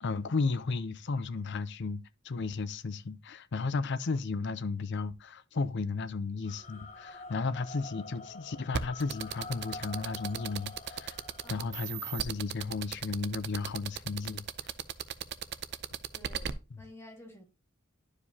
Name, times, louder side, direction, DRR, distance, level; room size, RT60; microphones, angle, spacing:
voice 1, 0.0-11.2 11.5-14.4, left 4 dB, 60° left, 0.6 m, -34 dB
sound 1, 6.5-11.5, left 3 dB, 35° left, 1.0 m, -46 dB
sound 2, 8.7-16.5, right 8 dB, 55° right, 0.5 m, -35 dB
voice 2, 16.1-17.4, left 1 dB, 15° left, 1.7 m, -51 dB
11.0 x 4.9 x 2.8 m
head